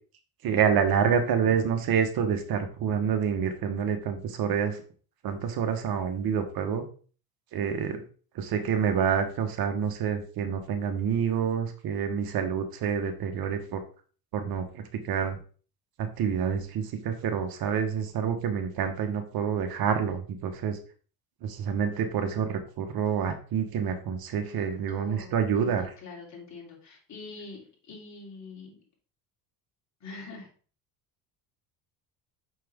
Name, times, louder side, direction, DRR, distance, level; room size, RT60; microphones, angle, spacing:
voice 1, 0.4-4.8 5.2-6.8 7.5-8.0 8.3-13.8 14.3-15.3 16.0-20.8 21.4-25.9, right 7 dB, 55° right, 7 dB, 1.2 m, -27 dB
voice 2, 24.7-28.8 30.0-30.5, left 3 dB, 40° left, -2 dB, 3.1 m, -44 dB
6.0 x 6.0 x 3.5 m, 0.40 s
cardioid pair, 115°, 42 cm